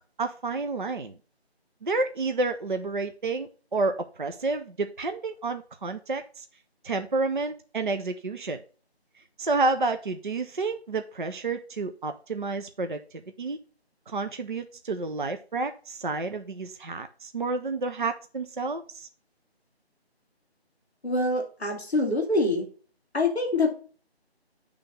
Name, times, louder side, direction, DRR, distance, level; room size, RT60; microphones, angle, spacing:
voice 1, 0.2-1.1 1.8-6.4 6.8-8.6 9.4-13.0 13.4-13.6 14.1-19.1, right 3 dB, 50° right, 7 dB, 0.5 m, -30 dB
voice 2, 21.0-22.7 23.1-23.8, left 2 dB, 5° left, -17 dB, 1.2 m, -25 dB
8.1 x 3.4 x 4.9 m, 0.39 s
figure-of-eight pair, 175°, 32 cm